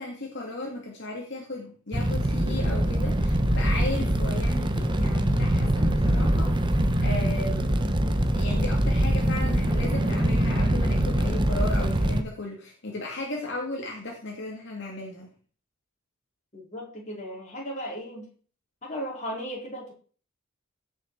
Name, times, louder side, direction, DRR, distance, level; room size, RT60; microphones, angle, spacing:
voice 1, 0.0-7.8 8.3-15.3, left 2 dB, 55° left, -1 dB, 2.4 m, -35 dB
Fire, 1.9-12.2, right 1 dB, 25° right, 1.0 m, -23 dB
voice 2, 16.5-18.3 18.8-19.9, equal, 35° left, -2 dB, 4.4 m, -36 dB
16.5 x 6.7 x 4.7 m, 0.42 s
head